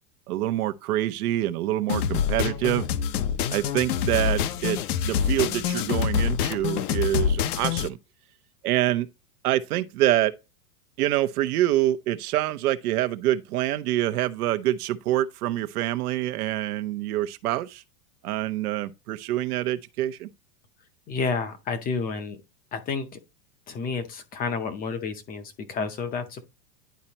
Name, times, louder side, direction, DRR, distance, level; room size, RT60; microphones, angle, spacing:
voice 1, 0.3-2.9 3.5-4.8 5.0-8.0 8.6-9.1 9.4-10.3 11.0-17.8 18.2-20.3, right 14 dB, 70° right, 0.9 m, -26 dB
sound 1, 1.9-7.9, left 8 dB, 70° left, 0.9 m, -26 dB
voice 2, 21.1-22.4 22.7-23.2 23.7-26.5, left 4 dB, 20° left, 0.6 m, -30 dB
10.5 x 4.3 x 2.9 m
supercardioid pair, 150°, 47 cm